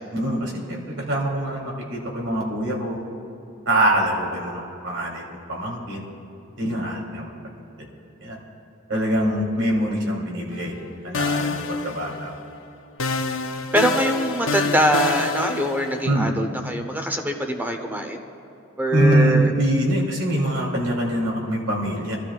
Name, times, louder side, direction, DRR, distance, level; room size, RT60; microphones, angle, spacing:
voice 1, 0.1-3.0 3.6-5.2 5.5-6.0 6.6-7.3 8.2-8.4 8.9-10.7 11.0-12.3 16.0-16.3 18.9-22.2, right 1 dB, 80° right, -2 dB, 2.9 m, -24 dB
sound 1, 10.5-10.9 11.1-12.6 13.0-16.1, left 4 dB, 85° left, 0.7 m, -27 dB
voice 2, 13.7-18.2 18.8-19.5, right 1 dB, 10° right, 5 dB, 0.8 m, -23 dB
26.0 x 12.5 x 2.4 m, 2.9 s
head